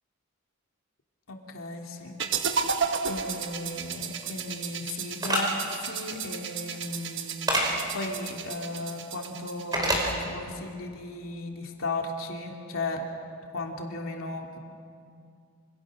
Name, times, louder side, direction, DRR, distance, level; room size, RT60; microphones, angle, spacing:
voice 1, 1.3-2.1 3.0-13.0 13.5-14.6, left 2 dB, 65° left, 1 dB, 2.7 m, -36 dB
sound 1, 2.2-10.2, right 6 dB, 55° right, 1.3 m, -33 dB
sound 2, 5.2-5.4 7.5-7.7 9.7-10.0, right 1 dB, 15° right, 5.0 m, -24 dB
28.0 x 26.5 x 6.5 m, 2.3 s
head